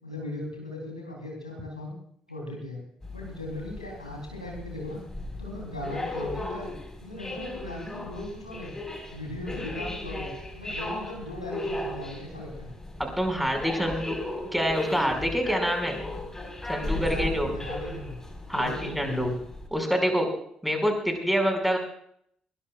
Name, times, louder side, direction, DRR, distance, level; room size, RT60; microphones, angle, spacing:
voice 1, 0.0-1.9 2.3-2.8 3.1-5.0 5.4-6.7 7.0-8.7 9.1-12.7 16.9-18.2 18.5-19.4, left 2 dB, 90° left, -1 dB, 3.5 m, -38 dB
sound 1, 3.0-19.7, left 2 dB, 15° left, 4.8 m, -36 dB
voice 2, 13.0-14.2 14.5-16.0 16.7-17.5 18.5-19.3 19.7-20.3 20.6-21.8, equal, ahead, 3 dB, 5.7 m, -26 dB
21.5 x 20.5 x 2.5 m, 0.66 s
figure-of-eight pair, 45°, 3 cm